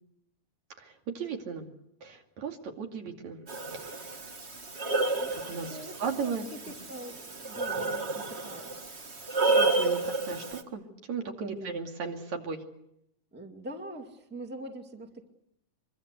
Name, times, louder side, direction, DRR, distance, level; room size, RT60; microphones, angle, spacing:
voice 1, 0.8-1.7 2.0-3.4 3.7-4.1 5.3-6.4 9.4-12.6, right 5 dB, 70° right, 3 dB, 3.8 m, -36 dB
Breathing, 3.5-10.6, right 3 dB, 30° right, 1.5 m, -31 dB
voice 2, 5.1-8.8 9.1-9.6 11.5-11.8 13.3-15.3, right 1 dB, 5° right, 4 dB, 1.7 m, -44 dB
24.5 x 23.5 x 8.1 m, 0.77 s
omnidirectional pair, 3.4 m